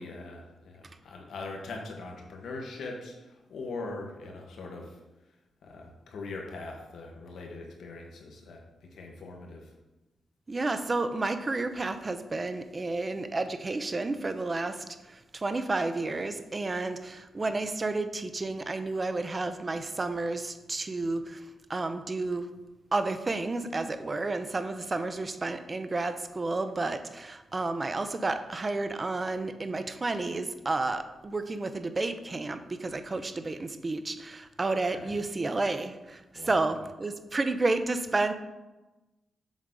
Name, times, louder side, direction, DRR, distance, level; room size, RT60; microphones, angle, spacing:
voice 1, 0.0-5.0 5.6-9.7 34.7-35.1 36.3-36.6, left 3 dB, 80° left, 1 dB, 1.1 m, -41 dB
voice 2, 10.5-21.4 21.7-22.5 22.9-38.3, right 3 dB, 35° right, 9 dB, 0.5 m, -31 dB
7.2 x 3.8 x 3.7 m, 1.1 s
cardioid pair, 60°, 0 cm